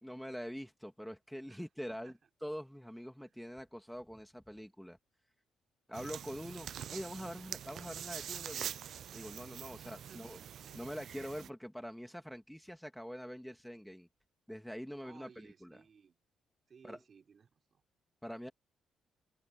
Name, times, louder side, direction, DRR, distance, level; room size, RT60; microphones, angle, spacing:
voice 1, 0.0-2.1 2.4-5.0 5.9-8.7 9.1-10.4 10.7-14.1 14.5-15.3 15.6-15.8 16.8-17.0 18.2-18.5, equal, ahead, 2.3 m, -44 dB
voice 2, 1.5-2.2 3.2-3.5 9.7-10.8 15.0-16.2 16.7-17.8, right 6 dB, 45° right, 4.1 m, -61 dB
sound 1, 5.9-11.5, right 9 dB, 65° right, 0.4 m, -45 dB
open air
cardioid pair, 90°, 0 cm